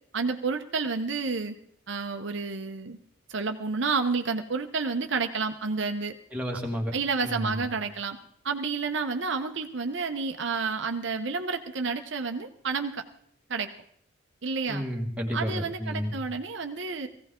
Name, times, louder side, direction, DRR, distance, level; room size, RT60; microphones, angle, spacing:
voice 1, 0.1-1.6 1.9-3.0 3.3-6.1 6.9-8.2 8.4-13.0 13.5-13.7 14.4-14.8 15.3-17.1, right 4 dB, 65° right, 6 dB, 0.8 m, -30 dB
voice 2, 6.3-6.9 7.2-7.6 14.7-16.1, equal, 5° right, 0 dB, 1.7 m, -31 dB
18.0 x 15.5 x 3.7 m, 0.67 s
head